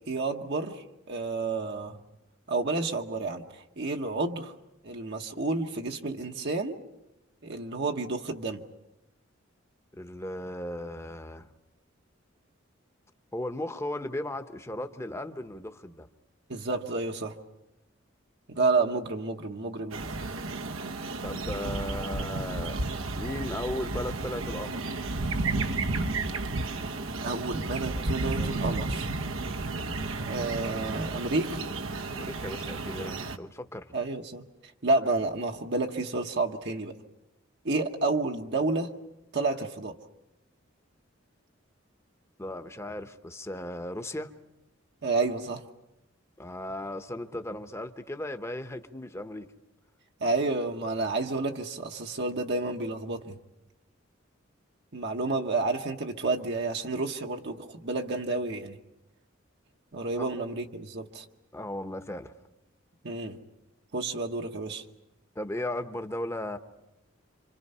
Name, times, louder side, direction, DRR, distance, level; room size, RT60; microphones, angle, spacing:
voice 1, 0.1-2.0 2.5-4.5 4.8-6.8 7.4-8.6 16.5-17.4 18.5-20.0 27.2-29.1 30.2-31.6 33.9-37.0 37.6-38.9 39.3-40.0 45.0-45.7 50.2-53.4 54.9-58.8 59.9-61.2 63.0-63.4 63.9-64.8, right 3 dB, 55° right, 3 dB, 1.1 m, -30 dB
voice 2, 10.0-11.5 13.3-16.1 21.2-22.8 23.1-24.9 32.1-33.9 42.4-44.3 46.4-49.4 60.2-60.3 61.5-62.3 65.4-66.6, left 1 dB, 15° left, 8 dB, 1.0 m, -36 dB
sound 1, 19.9-33.4, right 2 dB, 85° right, 1.1 m, -32 dB
28.0 x 26.0 x 5.6 m, 0.93 s
head